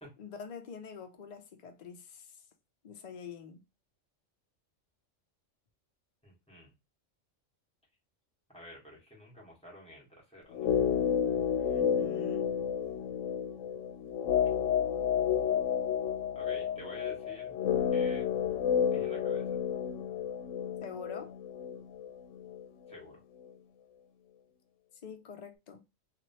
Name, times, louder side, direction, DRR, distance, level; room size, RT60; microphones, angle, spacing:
voice 1, 0.2-2.4 2.8-3.6 11.6-12.6 20.8-21.3 25.0-25.8, left 6 dB, 55° left, 0.4 m, -46 dB
voice 2, 6.2-6.7 8.5-10.7 16.3-17.6 17.9-18.3 18.9-19.6 22.9-23.2, equal, 5° left, 1.4 m, -50 dB
sound 1, 10.5-22.6 22.9-23.0, left 8 dB, 80° left, 0.9 m, -31 dB
3.0 x 2.5 x 2.7 m
omnidirectional pair, 1.3 m